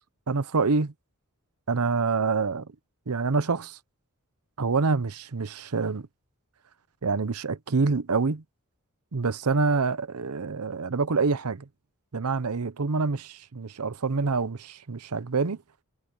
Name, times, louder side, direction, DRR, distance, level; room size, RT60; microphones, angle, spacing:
voice 1, 0.3-0.9 1.7-2.7 3.1-3.8 4.6-6.1 7.0-8.4 9.1-11.7 12.1-15.6, right 4 dB, 80° right, 0.8 m, -26 dB
head